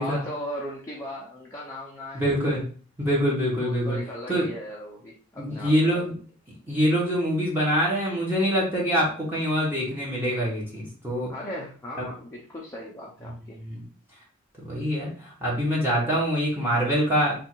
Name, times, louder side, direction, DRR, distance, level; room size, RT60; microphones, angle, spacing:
voice 1, 0.0-2.2 3.6-6.0 11.3-13.6, left 1 dB, 15° left, -5 dB, 0.7 m, -37 dB
voice 2, 2.1-2.6 3.0-4.0 4.3-4.5 5.4-6.1 6.7-11.3 12.0-12.1 13.6-13.8 14.6-17.3, equal, 10° right, -6 dB, 1.1 m, -24 dB
3.4 x 2.5 x 4.5 m, 0.42 s
head